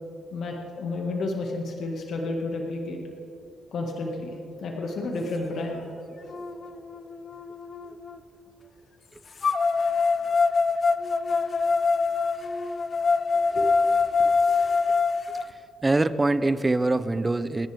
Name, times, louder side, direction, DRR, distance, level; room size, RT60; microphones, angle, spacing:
voice 1, 0.3-3.0 3.7-5.9 6.2-6.3 13.5-13.8 14.2-14.3, left 2 dB, 65° left, 0 dB, 1.8 m, -31 dB
sound 1, 5.6-5.7 6.3-8.2 9.4-15.4, left 4 dB, 40° left, 0.6 m, -24 dB
voice 2, 15.8-17.7, right 2 dB, 20° right, 13 dB, 0.6 m, -24 dB
29.0 x 10.5 x 3.5 m, 2.9 s
cardioid pair, 90°, 0 cm